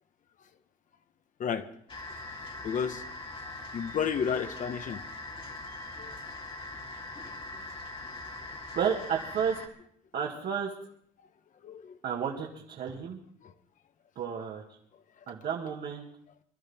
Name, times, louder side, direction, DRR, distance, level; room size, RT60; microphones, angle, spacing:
sound 1, 1.9-9.7, left 2 dB, 30° left, 2.2 m, -42 dB
voice 1, 2.4-3.0 3.7-5.0 6.0-6.1 11.6-12.0 13.4-13.5, left 7 dB, 50° left, 9 dB, 1.3 m, -32 dB
voice 2, 8.7-9.6 10.1-10.7 12.0-13.2 14.2-14.6 15.3-16.1, right 7 dB, 60° right, -2 dB, 2.3 m, -31 dB
24.5 x 12.5 x 3.7 m, 0.64 s
cardioid pair, 110°, 17 cm